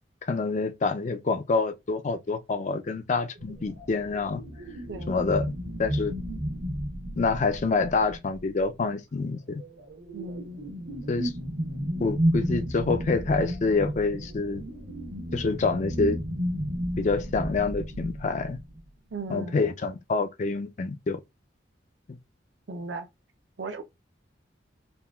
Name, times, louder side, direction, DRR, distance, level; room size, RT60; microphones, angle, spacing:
voice 1, 0.3-4.4 5.1-5.5 5.8-6.1 7.2-9.6 11.1-11.3 12.0-14.6 15.3-16.2 17.0-18.6 19.3-21.2 22.1-22.2, left 4 dB, 40° left, 0.4 m, -27 dB
sound 1, 3.4-8.6 9.5-18.8, equal, 85° right, 1.1 m, -32 dB
voice 2, 10.1-10.6 19.1-19.6 22.7-23.1 23.6-23.8, right 2 dB, 70° right, 0.6 m, -36 dB
3.6 x 2.2 x 2.3 m
head